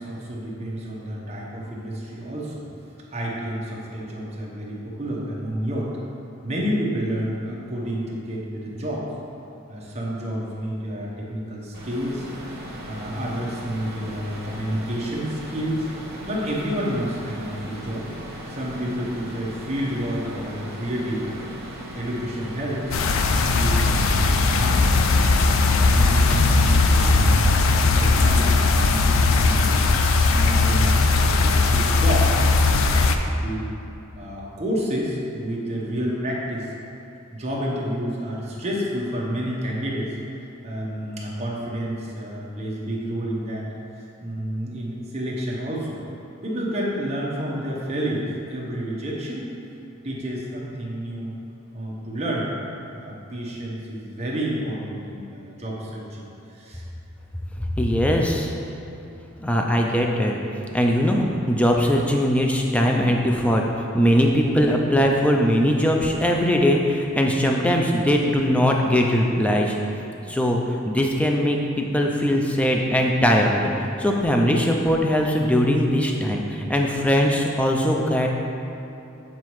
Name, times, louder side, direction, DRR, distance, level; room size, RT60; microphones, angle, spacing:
voice 1, 0.0-2.6 3.1-5.9 6.4-9.1 9.7-12.3 12.9-15.9 16.3-18.1 18.5-21.5 21.9-24.8 25.5-29.8 30.3-33.7 34.1-36.7 37.3-40.1 40.6-43.7 44.0-46.0 46.4-49.5 50.0-51.3 51.7-52.5 52.9-56.8, equal, 30° right, -4 dB, 0.9 m, -29 dB
sound 1, 11.7-25.3, equal, 50° right, 1.1 m, -37 dB
sound 2, 22.9-33.2, left 3 dB, 75° left, 0.4 m, -18 dB
voice 2, 57.8-58.5 59.4-60.3 60.6-69.8 70.3-70.6 70.9-73.7 74.0-78.3, equal, 5° left, 1 dB, 0.3 m, -20 dB
7.5 x 4.0 x 3.1 m, 2.9 s
head